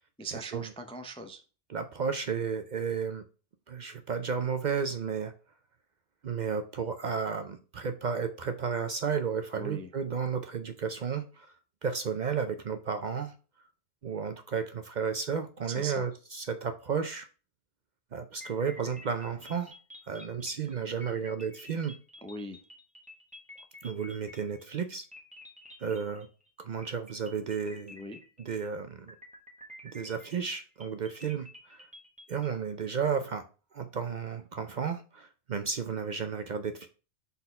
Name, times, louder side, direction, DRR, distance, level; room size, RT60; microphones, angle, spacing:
voice 1, 0.2-1.4 9.5-9.9 15.7-16.1 22.2-22.6 27.9-28.2, right 2 dB, 10° left, 6 dB, 0.3 m, -40 dB
voice 2, 1.7-3.2 3.7-5.3 6.2-11.5 11.8-13.3 14.0-17.3 18.1-19.7 20.1-22.0 23.8-25.0 25.8-26.3 26.6-27.9 28.5-29.1 29.9-31.9 32.3-33.4 33.7-36.9, right 6 dB, 55° right, 8 dB, 0.6 m, -33 dB
sound 1, 18.4-24.8 25.1-26.5 26.8-28.7 29.1-32.5, left 1 dB, 5° right, 1.1 m, -51 dB
4.2 x 4.1 x 5.4 m, 0.35 s
omnidirectional pair, 1.1 m